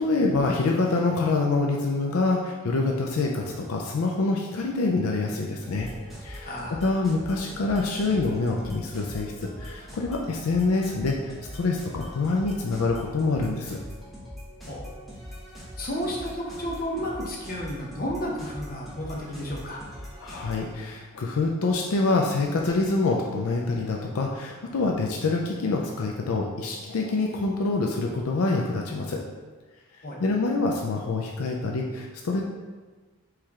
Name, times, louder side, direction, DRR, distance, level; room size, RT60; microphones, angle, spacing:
voice 1, 0.0-5.9 6.2-6.5 6.8-13.8 20.2-29.2 30.2-32.4, left 3 dB, 75° left, 0 dB, 0.4 m, -26 dB
sound 1, 5.6-20.7, equal, ahead, 0.8 m, -42 dB
voice 2, 6.4-6.8 14.7-14.9 15.8-19.8 30.0-30.2, equal, 40° left, -2 dB, 0.8 m, -32 dB
4.5 x 3.2 x 3.6 m, 1.4 s
head